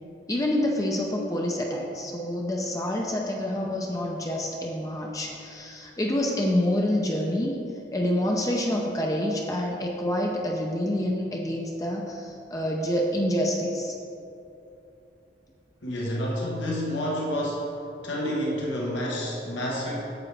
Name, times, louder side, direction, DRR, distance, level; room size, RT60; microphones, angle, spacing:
voice 1, 0.3-7.6 7.9-14.0, left 1 dB, 20° left, -1 dB, 0.5 m, -27 dB
voice 2, 15.8-17.8 18.0-20.1, equal, 85° left, -4 dB, 1.4 m, -29 dB
8.7 x 7.3 x 3.3 m, 2.8 s
head